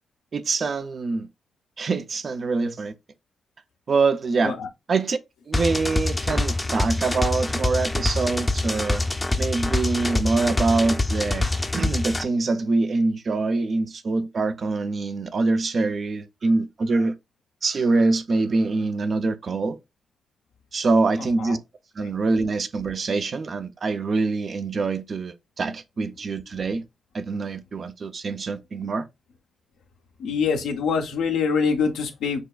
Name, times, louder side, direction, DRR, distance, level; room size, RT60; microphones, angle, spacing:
voice 1, 0.3-1.3 1.8-2.9 3.9-4.6 4.9-5.2 5.5-9.0 9.4-17.1 17.6-19.8 20.7-21.6 22.0-26.8 27.1-29.1, right 3 dB, 55° right, 0.5 m, -24 dB
sound 1, 5.5-12.2, left 2 dB, 25° left, 0.6 m, -25 dB
voice 2, 30.2-32.4, left 5 dB, 80° left, 0.7 m, -24 dB
6.1 x 2.2 x 2.4 m
hypercardioid pair, 40°, 0 cm